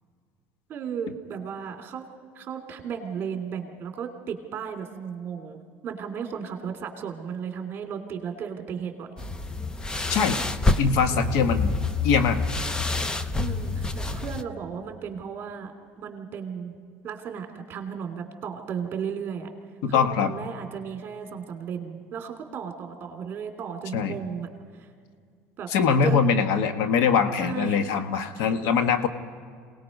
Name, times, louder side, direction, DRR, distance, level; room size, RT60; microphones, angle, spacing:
voice 1, 0.7-2.1 2.3-9.1 13.4-16.7 17.0-19.5 19.9-24.9 25.6-25.7 26.0-26.2 27.4-28.0 28.3-28.5, right 7 dB, 40° right, 4 dB, 2.8 m, -35 dB
sound 1, 9.2-14.4, left 3 dB, 15° left, 0.7 m, -27 dB
voice 2, 10.1-10.4 10.8-11.7 12.0-12.4 19.8-20.3 23.9-24.2 25.7-29.1, left 6 dB, 70° left, 9 dB, 1.4 m, -22 dB
27.0 x 19.0 x 5.3 m, 2.1 s
cardioid pair, 130°, 6 cm